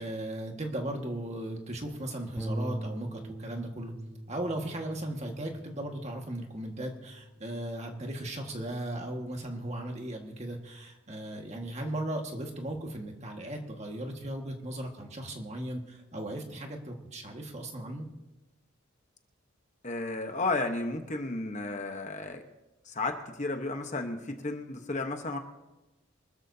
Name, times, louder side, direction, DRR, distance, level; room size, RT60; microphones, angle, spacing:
voice 1, 0.0-3.9 4.3-18.1, right 1 dB, 30° right, 2 dB, 1.7 m, -37 dB
Bass guitar, 2.4-8.6, equal, ahead, 1.2 m, -42 dB
voice 2, 19.8-22.4 22.9-25.4, left 2 dB, 35° left, 5 dB, 1.0 m, -33 dB
24.5 x 13.5 x 2.8 m, 1.0 s
head